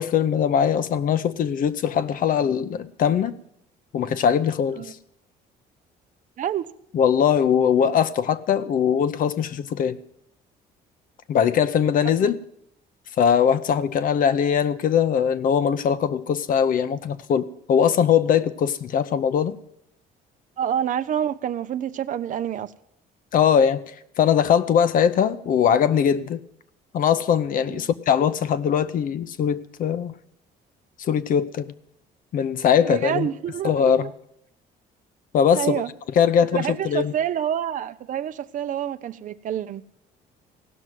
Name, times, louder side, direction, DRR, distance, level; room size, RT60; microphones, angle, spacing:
voice 1, 0.0-3.4 3.9-5.0 6.9-10.0 11.3-12.4 13.2-19.6 23.3-23.8 24.2-26.4 26.9-30.2 31.0-31.7 32.3-33.3 33.6-34.1 35.3-35.8 36.2-37.1, left 8 dB, 55° left, 0.7 m, -21 dB
voice 2, 20.6-22.7 27.7-27.8 32.8-34.1 35.5-35.9 36.5-39.8, right 10 dB, 50° right, 0.6 m, -27 dB
16.5 x 6.1 x 9.3 m
cardioid pair, 110°, 17 cm